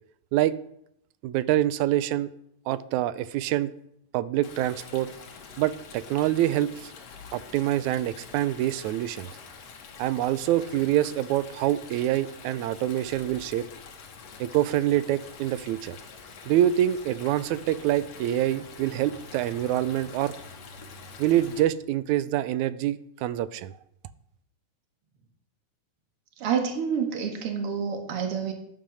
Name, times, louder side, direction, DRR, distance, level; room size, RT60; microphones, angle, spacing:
voice 1, 1.2-2.3 2.7-3.7 4.1-5.1 5.6-6.9 7.3-9.3 10.0-13.7 14.4-16.0 16.5-20.4 21.2-23.7, right 13 dB, 85° right, 16 dB, 2.0 m, -26 dB
Stream, 4.4-21.6, left 5 dB, 60° left, 2.6 m, -46 dB
voice 2, 26.4-28.5, right 6 dB, 50° right, 4 dB, 2.6 m, -28 dB
12.0 x 9.3 x 6.2 m, 0.74 s
omnidirectional pair, 3.4 m